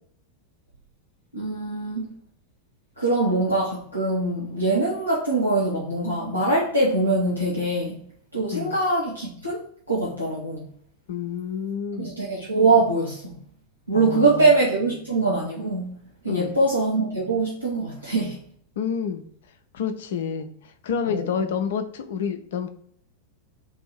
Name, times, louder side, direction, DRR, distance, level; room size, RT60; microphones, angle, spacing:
voice 1, 1.3-2.1 3.0-8.0 8.3-10.7 12.0-13.4 13.9-15.9 16.2-18.4 21.0-21.5, right 2 dB, 85° right, -6 dB, 1.0 m, -23 dB
voice 2, 11.1-12.1 13.9-14.5 16.3-16.5 18.8-19.3 19.7-20.5 20.8-22.7, left 7 dB, 60° left, 8 dB, 0.5 m, -28 dB
4.0 x 2.6 x 4.4 m, 0.62 s
figure-of-eight pair, 90°, 0 cm